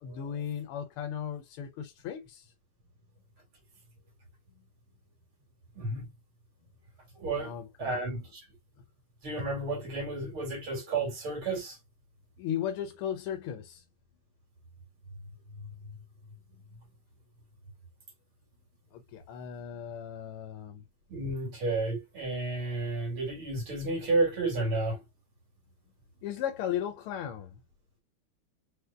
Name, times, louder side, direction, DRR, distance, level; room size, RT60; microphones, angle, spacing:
voice 1, 0.0-2.5 7.4-8.0 12.4-13.8 18.9-20.8 26.2-27.6, left 9 dB, 85° left, 1.6 m, -36 dB
voice 2, 5.7-6.1 7.2-7.5 7.8-8.4 9.2-11.8 21.1-25.0, right 2 dB, 70° right, 3.3 m, -31 dB
5.2 x 4.4 x 2.3 m
omnidirectional pair, 2.4 m